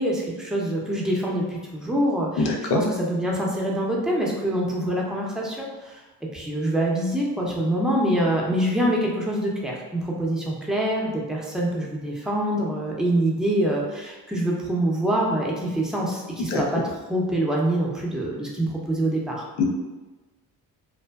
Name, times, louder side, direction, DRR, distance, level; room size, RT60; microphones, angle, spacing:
voice 1, 0.0-6.0 6.3-16.8 17.1-19.4, right 1 dB, ahead, -3 dB, 0.6 m, -25 dB
voice 2, 2.4-2.8 16.5-16.6 19.6-19.7, left 3 dB, 85° left, 2 dB, 0.5 m, -22 dB
2.6 x 2.1 x 2.3 m, 1.2 s
supercardioid pair, 55°, 44 cm